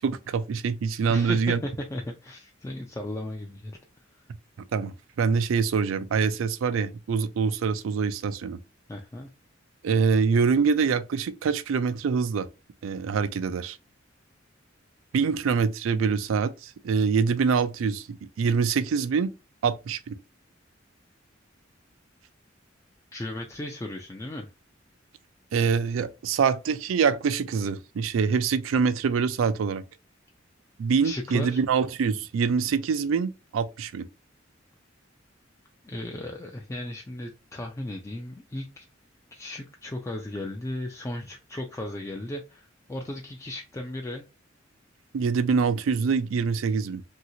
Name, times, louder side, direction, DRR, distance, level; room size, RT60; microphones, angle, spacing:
voice 1, 0.0-1.6 4.7-8.6 9.8-12.5 12.8-13.8 15.1-19.3 19.6-20.2 25.5-29.8 30.8-34.1 45.1-47.0, right 5 dB, 90° right, 0.4 m, -25 dB
voice 2, 1.1-3.8 8.9-9.3 23.1-24.5 31.0-31.6 35.8-38.9 39.3-44.2, left 1 dB, 15° left, 0.3 m, -36 dB
2.8 x 2.7 x 2.7 m
head